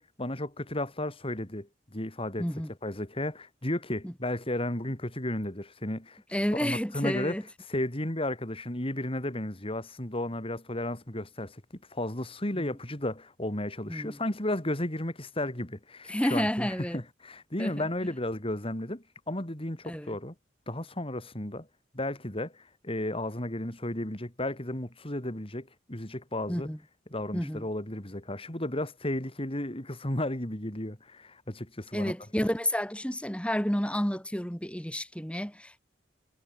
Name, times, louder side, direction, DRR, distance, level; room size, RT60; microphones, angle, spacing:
voice 1, 0.0-2.5 2.8-6.2 6.5-7.4 7.7-11.6 11.9-20.3 20.7-21.7 21.9-26.7 27.1-32.1, left 1 dB, 30° left, 3.4 m, -33 dB
voice 2, 2.4-2.7 4.0-4.1 6.3-7.4 12.5-12.7 13.9-14.2 16.1-17.0 17.6-17.7 19.8-20.2 26.5-26.8 27.3-27.6 31.9-35.8, equal, 5° left, 3.2 m, -30 dB
head